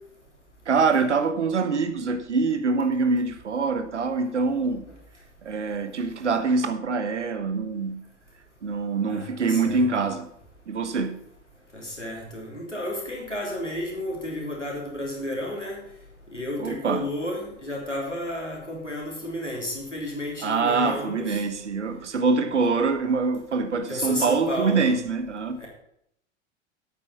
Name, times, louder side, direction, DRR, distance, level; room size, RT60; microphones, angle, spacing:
voice 1, 0.7-4.9 5.4-8.0 8.6-10.3 10.7-11.2 16.6-17.1 20.4-25.6, right 4 dB, 80° right, 1.2 m, -24 dB
voice 2, 9.1-9.8 11.7-15.8 16.3-21.4 23.9-24.9 25.6-25.7, left 1 dB, 90° left, 3.0 m, -32 dB
8.6 x 8.3 x 5.8 m
figure-of-eight pair, 85°, 35 cm